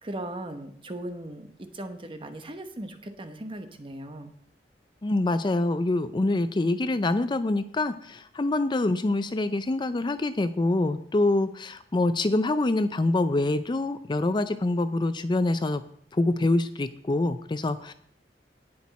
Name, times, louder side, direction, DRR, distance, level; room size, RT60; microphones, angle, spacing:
voice 1, 0.0-4.3, right 1 dB, 30° right, 7 dB, 1.1 m, -38 dB
voice 2, 5.0-15.8 16.1-17.9, left 2 dB, 25° left, 12 dB, 0.4 m, -25 dB
18.0 x 6.3 x 4.2 m, 0.62 s
head